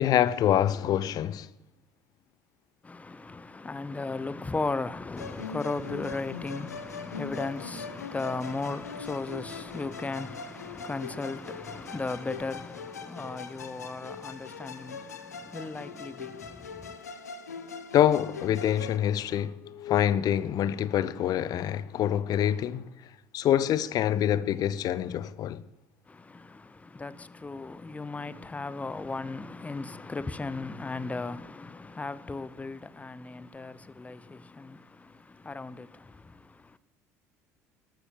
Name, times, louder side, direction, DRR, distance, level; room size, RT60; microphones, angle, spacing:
voice 1, 0.0-1.5 17.9-22.9 23.3-25.6, left 11 dB, 50° left, 0.8 m, -26 dB
voice 2, 2.8-17.0 26.1-36.8, left 3 dB, 15° left, 0.9 m, -36 dB
Musical instrument, 5.2-19.0, left 5 dB, 80° left, 1.0 m, -41 dB
13.0 x 12.5 x 7.2 m
figure-of-eight pair, 60°, 9 cm